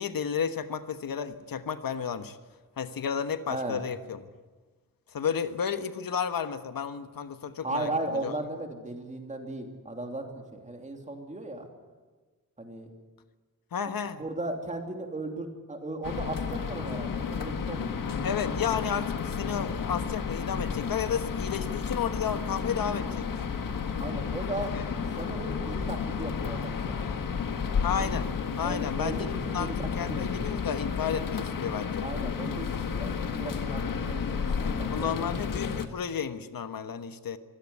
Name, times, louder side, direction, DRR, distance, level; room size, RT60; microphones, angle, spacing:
voice 1, 0.0-2.4 2.8-4.2 5.1-8.3 13.7-14.2 18.2-23.3 24.7-24.8 27.8-28.3 28.5-29.7 29.9-32.1 34.5-37.4, left 7 dB, 90° left, 10 dB, 1.3 m, -32 dB
voice 2, 3.5-3.8 7.6-11.7 12.6-12.9 14.2-18.1 24.0-24.7 25.1-27.1 28.6-29.7 30.1-30.5 32.0-35.6, right 2 dB, 20° right, 3 dB, 3.0 m, -36 dB
sound 1, 16.0-35.9, left 6 dB, 70° left, 1.7 m, -32 dB
25.0 x 16.5 x 9.7 m, 1.3 s
wide cardioid pair, 175°, 34 cm